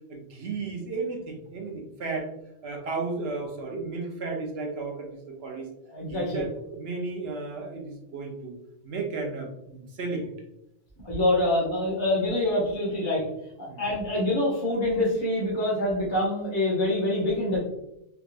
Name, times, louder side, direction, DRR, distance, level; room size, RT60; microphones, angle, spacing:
voice 1, 0.1-2.3 2.6-5.7 6.1-8.5 8.8-10.3 13.7-13.8, right 3 dB, 60° right, 2 dB, 0.9 m, -34 dB
voice 2, 5.9-6.4 11.0-13.2 13.6-17.6, left 1 dB, 25° left, -8 dB, 0.9 m, -25 dB
3.4 x 2.9 x 2.5 m, 0.84 s
omnidirectional pair, 1.3 m